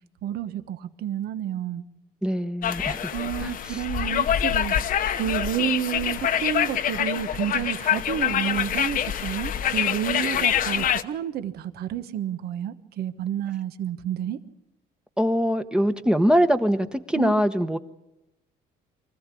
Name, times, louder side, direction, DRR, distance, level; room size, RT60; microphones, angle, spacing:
voice 1, 0.2-1.8 3.1-14.4 17.1-17.3, right 11 dB, 65° right, 11 dB, 1.2 m, -30 dB
voice 2, 2.2-3.1 3.4-3.8 15.2-17.8, equal, 5° right, 8 dB, 1.0 m, -23 dB
sound 1, 2.6-11.0, left 9 dB, 55° left, 1.0 m, -25 dB
24.5 x 15.5 x 8.4 m, 0.92 s
cardioid pair, 110°, 17 cm